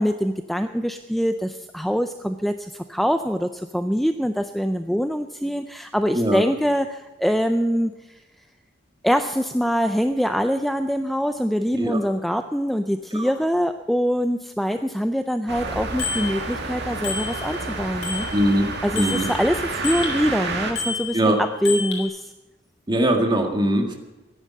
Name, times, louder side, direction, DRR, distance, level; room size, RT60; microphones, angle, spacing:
voice 1, 0.0-8.2 9.0-18.3 18.8-22.3, equal, ahead, 8 dB, 0.4 m, -24 dB
sound 1, 15.5-20.7, right 3 dB, 65° right, 2.2 m, -30 dB
Bicycle bell, 16.0-16.3 17.0-17.7 18.0-20.2 20.8-22.0, left 5 dB, 85° left, 3.8 m, -30 dB
voice 2, 18.3-18.7 18.9-19.2 21.1-21.4 22.9-23.9, right 1 dB, 25° right, 3 dB, 1.9 m, -21 dB
14.5 x 10.0 x 7.4 m, 1.1 s
head